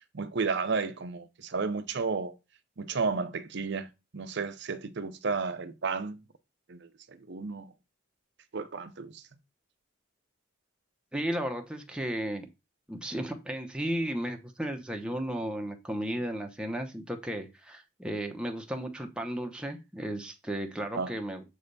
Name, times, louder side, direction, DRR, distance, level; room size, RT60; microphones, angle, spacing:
voice 1, 0.1-2.3 2.8-6.2 6.7-7.7 8.5-9.2 20.9-21.1, right 4 dB, 55° right, 0.6 m, -33 dB
voice 2, 11.1-12.5 12.9-21.4, right 1 dB, 5° right, 0.8 m, -34 dB
7.7 x 3.4 x 4.0 m
head